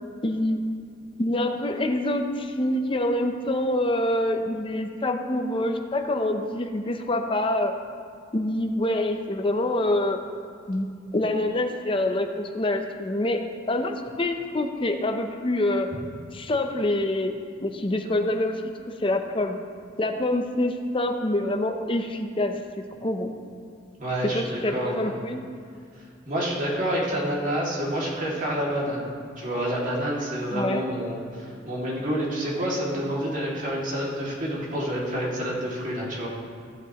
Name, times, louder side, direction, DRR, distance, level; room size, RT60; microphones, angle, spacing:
voice 1, 0.2-0.6 1.2-7.7 8.3-10.2 10.7-15.9 16.3-17.3 17.6-18.6 19.0-19.6 20.0-23.3 24.2-25.4 30.5-30.8, left 1 dB, 30° left, 5 dB, 0.7 m, -26 dB
voice 2, 24.0-25.1 26.2-36.3, equal, 45° right, -5 dB, 2.4 m, -28 dB
16.0 x 7.9 x 3.0 m, 2.3 s
head